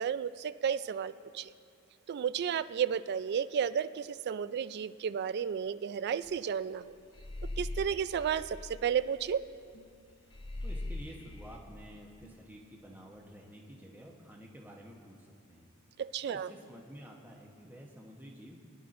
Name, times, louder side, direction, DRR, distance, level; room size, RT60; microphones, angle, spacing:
voice 1, 0.0-1.5 2.1-7.0 7.6-9.4 16.1-16.5, right 8 dB, 50° right, 15 dB, 0.3 m, -32 dB
sound 1, 6.3-6.5 6.7-9.6 9.9-10.0 10.3-11.6, left 2 dB, 20° left, 0.6 m, -41 dB
sound 2, 9.7-10.1 12.2-12.5, right 1 dB, 45° left, 1.2 m, -58 dB
voice 2, 10.2-15.7 16.3-18.6, equal, 10° right, -1 dB, 0.9 m, -50 dB
22.0 x 11.0 x 2.6 m, 2.3 s
head